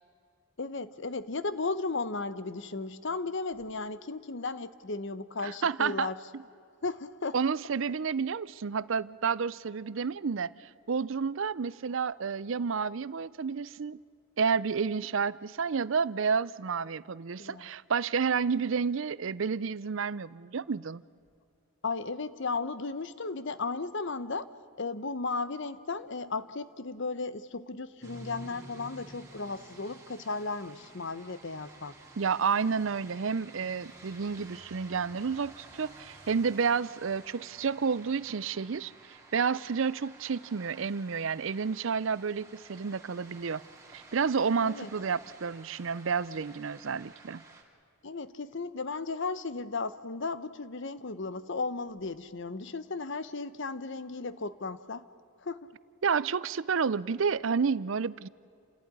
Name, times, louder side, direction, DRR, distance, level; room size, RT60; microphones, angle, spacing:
voice 1, 0.6-6.2 6.8-7.4 17.4-17.7 21.8-24.5 24.8-31.9 44.6-44.9 48.0-55.0 55.4-55.7, left 3 dB, 60° left, 14 dB, 0.9 m, -35 dB
voice 2, 5.4-6.1 7.3-10.5 10.9-14.0 14.4-21.0 32.2-38.9 39.3-43.6 43.9-47.4 56.0-58.3, right 5 dB, 65° right, 19 dB, 0.5 m, -30 dB
sound 1, 28.0-47.6, right 2 dB, 15° right, 3.1 m, -52 dB
28.5 x 15.5 x 9.7 m, 2.5 s
head